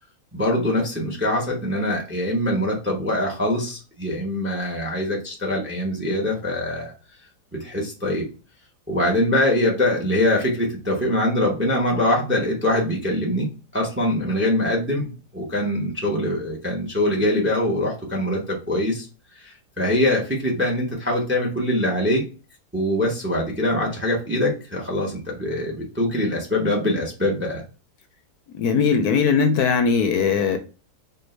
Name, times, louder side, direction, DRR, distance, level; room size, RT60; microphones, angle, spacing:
voice 1, 0.3-6.9 7.5-8.3 8.9-19.1 19.3-22.2 22.7-27.6, left 1 dB, 10° right, 0.7 m, -23 dB
voice 2, 28.5-30.6, left 5 dB, 75° left, 1.1 m, -19 dB
4.5 x 2.4 x 3.2 m
omnidirectional pair, 1.8 m